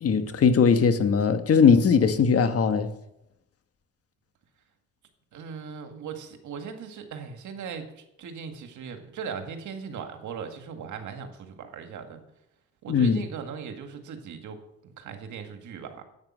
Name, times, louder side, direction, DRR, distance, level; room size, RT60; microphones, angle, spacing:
voice 1, 0.0-2.9 12.9-13.2, left 6 dB, 50° left, 1.3 m, -20 dB
voice 2, 5.3-12.2 12.8-16.0, right 6 dB, 75° right, 1.9 m, -39 dB
11.0 x 8.8 x 7.4 m
cardioid pair, 90°, 30 cm